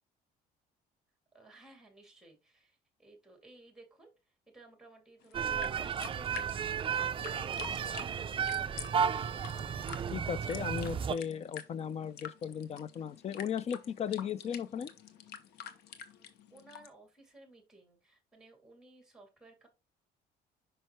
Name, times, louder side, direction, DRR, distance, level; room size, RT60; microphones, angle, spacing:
voice 1, 1.3-9.2 16.5-19.7, right 2 dB, 5° right, 2.5 m, -58 dB
sound 1, 5.2-16.9, left 8 dB, 80° left, 1.0 m, -48 dB
sound 2, 5.3-11.2, right 7 dB, 30° right, 0.4 m, -33 dB
voice 2, 10.1-14.9, left 8 dB, 40° left, 0.5 m, -36 dB
5.6 x 5.5 x 3.0 m
cardioid pair, 110°, 17 cm